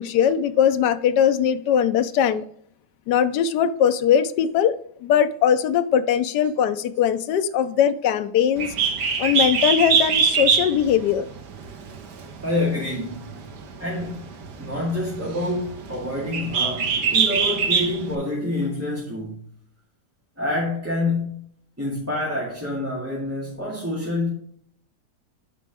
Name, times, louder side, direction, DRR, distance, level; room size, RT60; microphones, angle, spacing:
voice 1, 0.0-2.5 3.1-8.7 9.2-11.3, left 8 dB, 80° left, 9 dB, 1.3 m, -20 dB
Bird, 8.6-18.1, right 6 dB, 75° right, 1.7 m, -24 dB
voice 2, 12.4-14.2 14.6-19.4 20.4-21.4 21.8-24.3, left 2 dB, 10° right, -6 dB, 2.0 m, -27 dB
12.5 x 5.0 x 3.5 m, 0.63 s
omnidirectional pair, 1.8 m